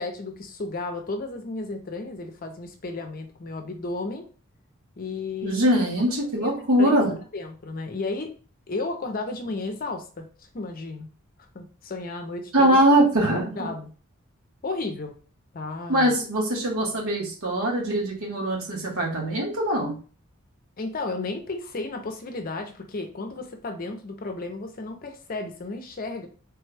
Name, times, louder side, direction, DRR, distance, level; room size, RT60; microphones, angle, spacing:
voice 1, 0.0-4.2 5.0-5.6 6.4-7.0 7.3-8.3 8.7-11.1 11.5-12.8 13.6-13.9 14.6-15.1 15.5-16.1 20.8-26.3, left 3 dB, 40° left, 5 dB, 0.5 m, -33 dB
voice 2, 5.4-7.1 12.5-13.7 15.9-19.9, right 1 dB, 85° right, -1 dB, 1.2 m, -22 dB
3.3 x 2.2 x 3.3 m, 0.38 s
head